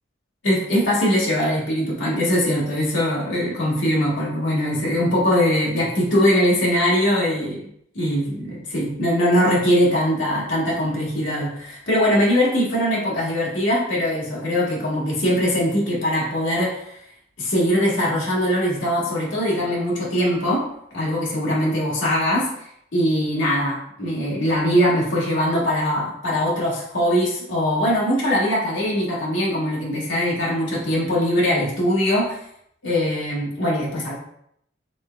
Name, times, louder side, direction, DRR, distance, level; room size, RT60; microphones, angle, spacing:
voice 1, 0.4-7.6 7.9-17.0 17.4-20.6 20.9-32.4 32.8-34.1, equal, 80° left, -5 dB, 1.5 m, -21 dB
6.0 x 3.3 x 2.3 m, 0.71 s
head